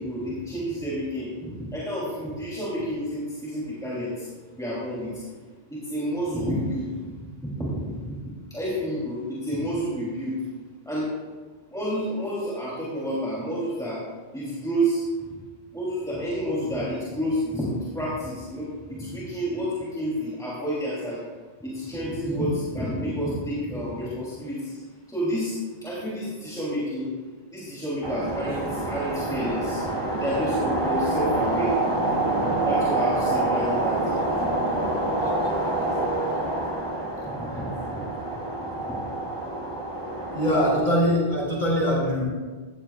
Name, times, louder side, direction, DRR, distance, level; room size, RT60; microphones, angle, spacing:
voice 1, 0.0-4.3 4.6-5.1 5.7-7.1 7.6-8.2 8.5-10.4 10.8-11.1 11.7-14.0 14.3-15.0 15.3-15.4 15.7-21.2 21.6-24.8 25.1-27.1 27.5-29.8 30.2-31.7 32.4-34.1 37.3-38.0 38.9-39.0, equal, 5° left, -8 dB, 3.3 m, -29 dB
sound 1, 28.0-40.8, right 2 dB, 25° right, 2.4 m, -26 dB
voice 2, 40.3-42.2, equal, 45° left, -4 dB, 3.5 m, -22 dB
16.5 x 15.0 x 2.5 m, 1.4 s
omnidirectional pair, 1.1 m